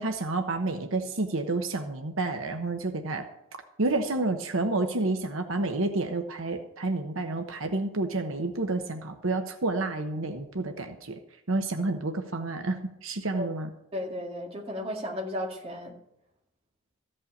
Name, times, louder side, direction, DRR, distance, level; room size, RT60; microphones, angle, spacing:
voice 1, 0.0-3.3 3.8-11.2 11.5-13.7, right 2 dB, 75° right, 5 dB, 1.1 m, -29 dB
voice 2, 13.9-16.0, left 1 dB, 30° right, 0 dB, 2.0 m, -34 dB
14.5 x 5.5 x 8.5 m, 0.81 s
head